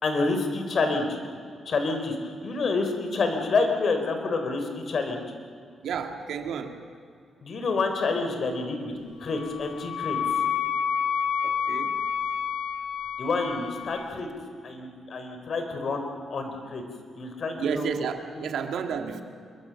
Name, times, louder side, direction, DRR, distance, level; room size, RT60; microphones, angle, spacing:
voice 1, 0.0-1.2 1.7-5.2 7.4-8.9 9.2-10.2 13.2-14.3 14.6-16.8 17.1-17.9, left 3 dB, 55° left, 5 dB, 4.0 m, -28 dB
voice 2, 5.8-6.8 11.4-12.1 17.6-19.2, right 6 dB, 80° right, 5 dB, 2.2 m, -31 dB
Wind instrument woodwind instrument, 9.3-14.1, left 7 dB, 75° left, 0.9 m, -29 dB
27.0 x 22.5 x 7.1 m, 2.3 s
cardioid pair, 105°, 0 cm